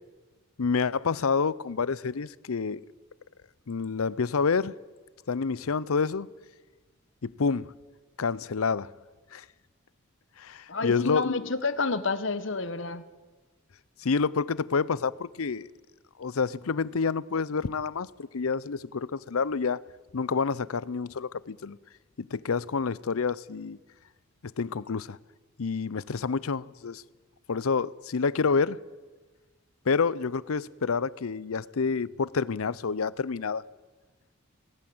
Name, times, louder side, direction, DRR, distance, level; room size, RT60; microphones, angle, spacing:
voice 1, 0.6-2.8 3.7-4.7 5.3-6.3 7.2-7.7 8.2-8.9 9.3-9.4 10.4-11.5 14.0-15.7 16.2-19.8 20.1-21.8 22.2-23.8 24.6-25.2 25.6-27.0 27.5-28.8 29.9-33.6, left 5 dB, 85° left, 0.6 m, -28 dB
voice 2, 10.7-13.0, left 3 dB, 60° left, 1.2 m, -29 dB
23.5 x 18.5 x 7.8 m
head